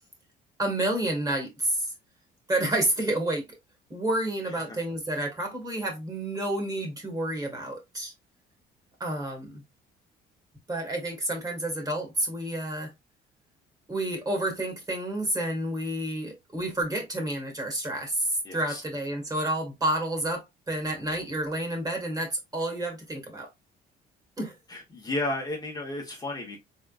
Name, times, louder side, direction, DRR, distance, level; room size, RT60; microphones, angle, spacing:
voice 1, 0.6-1.9 2.5-3.4 3.9-8.1 9.0-9.6 10.7-12.9 13.9-23.5 24.4-24.6, right 1 dB, 20° right, 2.1 m, -29 dB
voice 2, 18.4-18.8 24.7-26.6, left 2 dB, 25° left, 1.3 m, -33 dB
4.1 x 3.8 x 2.5 m
cardioid pair, 110°, 17 cm